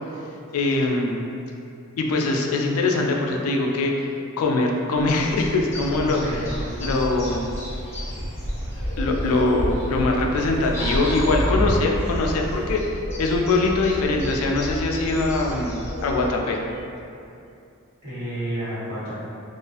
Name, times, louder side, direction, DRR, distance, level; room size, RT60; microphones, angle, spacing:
voice 1, 0.5-1.2 2.0-3.9 4.4-6.2 6.8-7.5 8.8-12.8 13.2-16.6, left 2 dB, 75° left, 1 dB, 0.3 m, -22 dB
sound 1, 4.9-16.3, equal, 10° left, 0.5 m, -32 dB
Waves surf, 5.6-13.0, equal, 50° right, 0.4 m, -32 dB
voice 2, 6.0-7.3 18.0-19.1, right 1 dB, 80° right, -13 dB, 1.3 m, -31 dB
2.4 x 2.4 x 2.3 m, 2.6 s
head